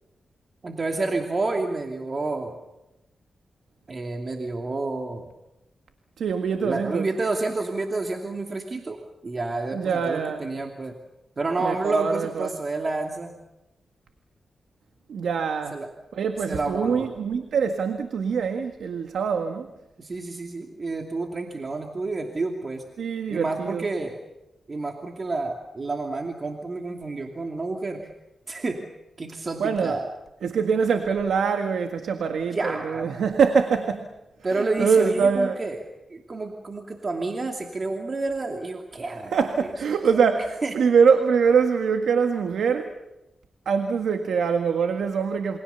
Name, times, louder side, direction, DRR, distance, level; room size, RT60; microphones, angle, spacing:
voice 1, 0.6-2.5 3.9-5.3 6.6-11.0 11.4-13.3 15.7-15.9 16.5-17.1 20.0-22.8 23.3-24.2 24.7-28.1 28.5-28.8 29.2-30.1 32.4-33.1 34.4-35.8 36.1-40.2 40.6-40.7, right 3 dB, 40° right, 3 dB, 2.6 m, -29 dB
voice 2, 6.2-7.1 9.7-10.4 11.6-12.5 15.1-15.8 16.1-19.7 23.0-23.9 29.6-30.0 30.4-34.1 34.5-35.6 39.3-42.9 43.7-45.6, right 6 dB, 85° right, 6 dB, 1.7 m, -23 dB
28.0 x 24.0 x 7.0 m, 0.97 s
cardioid pair, 70°, 0 cm